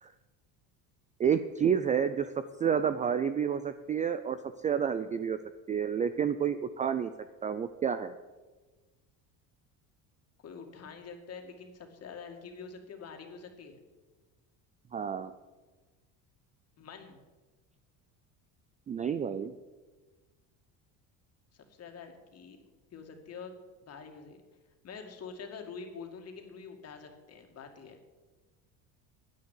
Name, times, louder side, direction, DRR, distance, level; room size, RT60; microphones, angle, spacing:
voice 1, 1.2-2.3 2.6-4.4 4.6-5.4 5.7-7.1 7.4-8.1 14.9-15.3 18.9-19.5, right 7 dB, 20° right, 12 dB, 0.3 m, -29 dB
voice 2, 10.4-13.8 16.8-17.2 21.5-22.6 22.9-23.5 23.8-24.4 24.8-28.0, left 5 dB, 40° left, 4 dB, 2.3 m, -46 dB
10.5 x 9.6 x 8.3 m, 1.3 s
cardioid pair, 130°, 39 cm